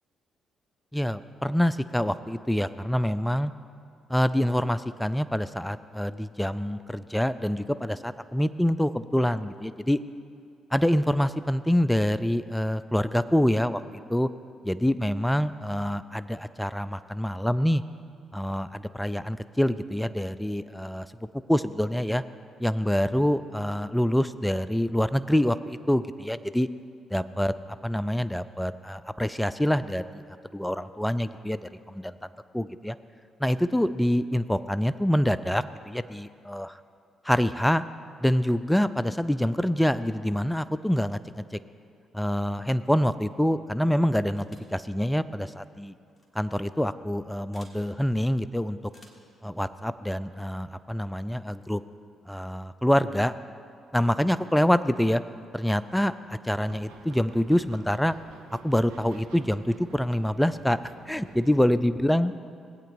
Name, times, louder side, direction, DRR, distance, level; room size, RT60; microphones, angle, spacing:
voice 1, 0.9-3.5 4.1-10.0 10.7-14.3 14.6-17.8 18.3-21.1 21.5-22.2 22.6-26.7 27.1-30.2 30.5-32.2 32.5-33.0 33.4-36.8 37.2-37.8 38.2-41.4 42.1-45.9 46.4-48.8 49.4-51.8 52.3-53.3 53.9-55.2 55.5-58.1 58.6-60.8 61.1-62.3, equal, 5° left, 14 dB, 0.4 m, -26 dB
sound 1, 44.3-44.8 46.1-46.3 47.5-47.8 48.9-49.3, left 1 dB, 25° left, 1.8 m, -55 dB
sound 2, 56.6-61.7, right 4 dB, 75° right, 0.7 m, -50 dB
18.5 x 8.6 x 2.6 m, 2.3 s
figure-of-eight pair, 40°, 0 cm